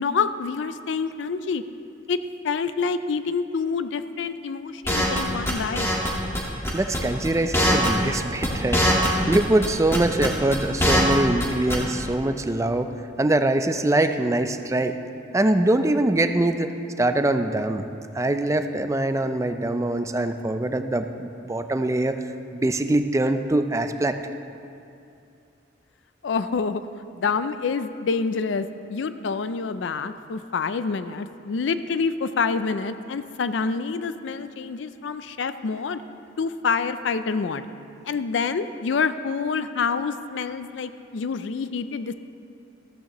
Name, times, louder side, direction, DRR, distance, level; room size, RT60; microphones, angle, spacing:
voice 1, 0.0-1.6 2.1-2.2 2.4-5.9 26.2-26.8 27.1-36.0 36.4-37.7 38.1-42.1, left 5 dB, 70° left, 12 dB, 0.4 m, -27 dB
sound 1, 4.9-5.2 5.5-6.1 6.3-6.4 6.6-7.3 7.5-8.2 8.4-9.4 9.6-11.1 11.4-11.5 11.7-12.0, equal, 15° left, 1.7 m, -21 dB
voice 2, 6.7-12.9 13.2-15.0 15.3-16.7 17.0-17.8 18.1-22.2 22.5-24.2, right 1 dB, 15° right, 8 dB, 0.4 m, -23 dB
14.0 x 14.0 x 3.0 m, 2.6 s
head